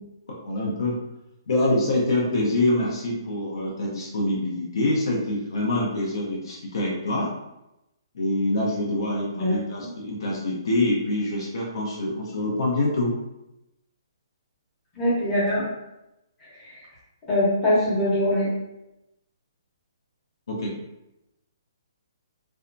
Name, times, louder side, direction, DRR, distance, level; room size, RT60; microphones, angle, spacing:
voice 1, 0.4-1.0 1.5-7.3 8.1-13.2 20.5-20.8, left 1 dB, 65° left, -3 dB, 0.7 m, -25 dB
voice 2, 9.3-9.9 15.0-15.6 16.4-16.8 17.3-18.5, left 1 dB, 15° left, -9 dB, 0.8 m, -23 dB
2.7 x 2.2 x 2.5 m, 0.92 s
hypercardioid pair, 170°, 2 cm